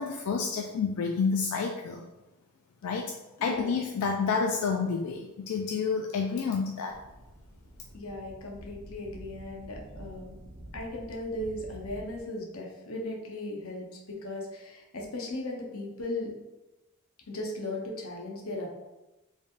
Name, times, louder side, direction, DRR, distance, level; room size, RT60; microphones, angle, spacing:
voice 1, 0.0-2.1 2.8-3.1 3.4-7.0, left 5 dB, 90° left, 2 dB, 0.4 m, -29 dB
voice 2, 3.4-3.8 7.9-10.4 10.7-16.3 17.3-18.7, left 1 dB, 70° left, 0 dB, 0.8 m, -37 dB
sound 1, 6.9-12.2, equal, 90° right, 0.9 m, -48 dB
4.3 x 3.4 x 2.4 m, 1.0 s
head